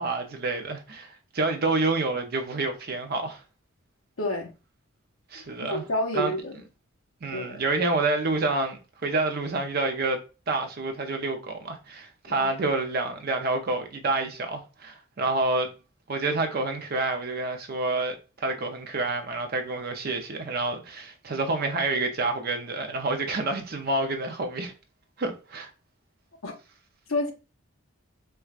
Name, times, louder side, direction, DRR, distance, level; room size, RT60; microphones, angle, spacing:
voice 1, 0.0-3.4 5.3-5.8 6.1-6.3 7.2-15.7 16.1-24.7 25.2-25.7, right 3 dB, 45° right, 0.6 m, -28 dB
voice 2, 4.2-4.5 5.3-6.5 7.3-7.6 12.3-12.5 26.4-26.5 27.1-27.3, left 1 dB, 80° left, 0.8 m, -29 dB
4.5 x 2.2 x 2.4 m
head